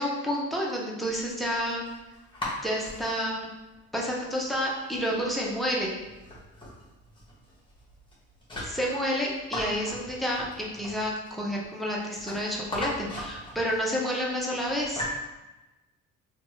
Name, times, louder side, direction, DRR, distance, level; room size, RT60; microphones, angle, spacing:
voice 1, 0.0-1.9 2.6-3.5 3.9-5.9 8.6-15.1, equal, ahead, -3 dB, 0.6 m, -29 dB
sound 1, 1.1-15.2, left 1 dB, 15° left, 1.0 m, -40 dB
2.9 x 2.3 x 2.8 m, 1.1 s
cardioid pair, 90°, 30 cm